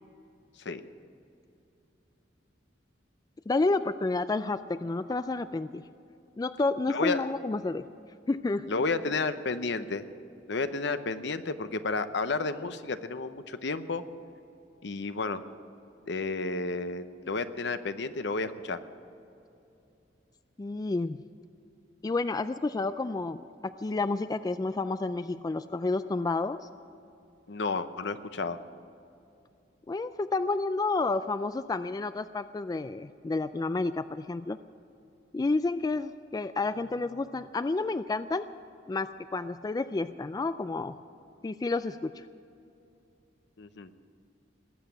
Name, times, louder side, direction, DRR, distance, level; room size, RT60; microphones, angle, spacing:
voice 1, 3.5-5.8 6.4-7.9 8.3-8.7 20.6-21.2 22.0-26.7 29.9-34.6 35.3-38.5 38.9-41.0 41.4-42.2, left 3 dB, 20° left, 12 dB, 0.3 m, -30 dB
voice 2, 6.9-7.2 8.7-10.0 10.5-14.0 14.8-15.4 16.1-18.8 27.5-28.6 43.6-43.9, left 3 dB, 70° left, 11 dB, 0.8 m, -31 dB
19.5 x 8.1 x 8.6 m, 2.7 s
head